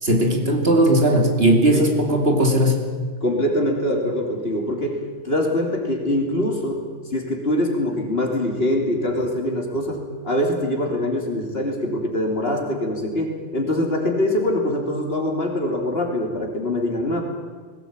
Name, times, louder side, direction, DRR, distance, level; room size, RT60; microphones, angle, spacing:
voice 1, 0.0-2.8, right 1 dB, 55° right, 2 dB, 2.9 m, -18 dB
voice 2, 3.2-6.8 7.1-17.2, left 1 dB, 55° left, 1 dB, 3.5 m, -23 dB
20.0 x 17.5 x 8.7 m, 1.5 s
omnidirectional pair, 1.2 m